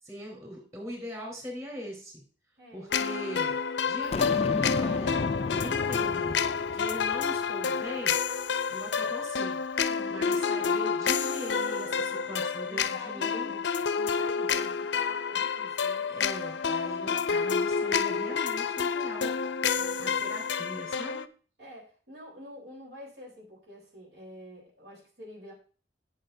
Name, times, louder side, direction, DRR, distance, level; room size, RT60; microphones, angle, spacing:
voice 1, 0.0-2.2 2.7-3.6 3.9-6.4 6.7-8.2 8.7-9.6 10.1-13.5 16.1-19.3 19.7-21.2, equal, 15° right, -2 dB, 3.8 m, -41 dB
voice 2, 2.6-3.0 9.9-10.3 12.6-13.7 13.9-16.1 17.4-18.0 19.6-20.1 21.6-25.5, equal, 65° right, -1 dB, 3.7 m, -48 dB
sound 1, 2.9-21.3, left 6 dB, 75° left, 0.6 m, -29 dB
Boom, 4.1-7.4, left 3 dB, 35° left, 0.3 m, -33 dB
12.5 x 6.9 x 2.6 m, 0.39 s
head